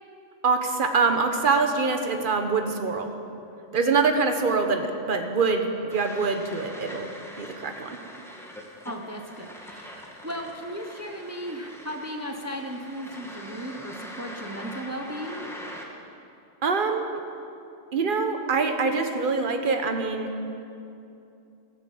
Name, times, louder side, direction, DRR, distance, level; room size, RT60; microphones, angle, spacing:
voice 1, 0.4-3.1 3.7-7.1 7.4-7.9 16.6-17.2 17.9-20.3, right 4 dB, 45° right, 5 dB, 1.3 m, -24 dB
sound 1, 5.9-15.8, equal, ahead, 1.6 m, -43 dB
voice 2, 8.8-15.4, equal, 15° right, 3 dB, 1.0 m, -36 dB
14.5 x 10.5 x 7.8 m, 2.7 s
omnidirectional pair, 1.2 m